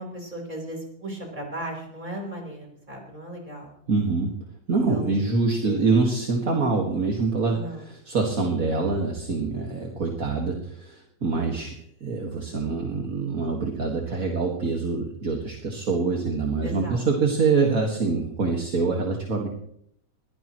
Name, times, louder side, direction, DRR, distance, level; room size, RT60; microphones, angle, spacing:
voice 1, 0.0-3.7 4.9-5.8 6.0-6.1 7.5-7.9 11.3-11.7 16.6-17.1, right 1 dB, 15° right, -1 dB, 4.7 m, -37 dB
voice 2, 3.9-4.3 4.7-7.6 7.9-11.7 12.0-19.5, right 4 dB, 35° right, 0 dB, 1.8 m, -25 dB
22.0 x 17.0 x 3.1 m, 0.70 s
omnidirectional pair, 3.3 m